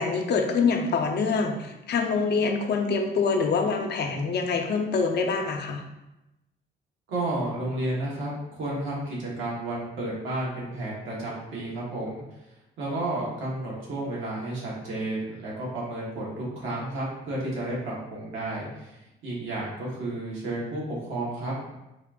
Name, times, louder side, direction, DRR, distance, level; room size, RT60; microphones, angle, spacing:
voice 1, 0.0-5.8, left 4 dB, 60° left, 4 dB, 0.6 m, -25 dB
voice 2, 7.1-12.2 12.8-21.7, right 1 dB, 85° right, -5 dB, 1.3 m, -32 dB
4.1 x 2.5 x 3.6 m, 0.94 s
cardioid pair, 90°, 20 cm